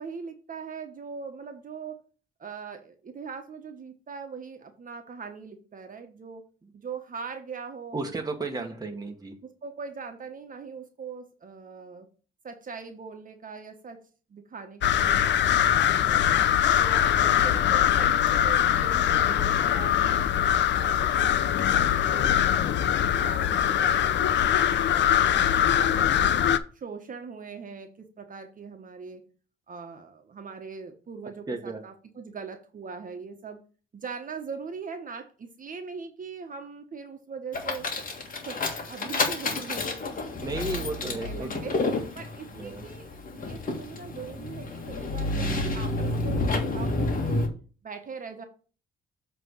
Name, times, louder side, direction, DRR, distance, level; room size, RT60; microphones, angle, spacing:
voice 1, 0.0-2.0 2.4-6.4 6.7-8.1 8.6-8.7 9.4-12.1 12.4-14.0 14.3-16.3 16.8-20.3 20.7-26.3 26.7-29.2 29.7-33.6 33.9-37.9 38.3-40.2 40.5-47.5 47.8-48.4, right 5 dB, 45° right, 1.3 m, -41 dB
voice 2, 7.9-9.4 31.5-31.8 40.4-41.6 42.5-42.8, right 2 dB, 20° right, 1.3 m, -33 dB
sound 1, 14.8-26.6, left 10 dB, 65° left, 0.6 m, -22 dB
sound 2, 37.5-47.5, left 2 dB, 45° left, 1.7 m, -30 dB
7.5 x 3.4 x 6.3 m
cardioid pair, 90°, 20 cm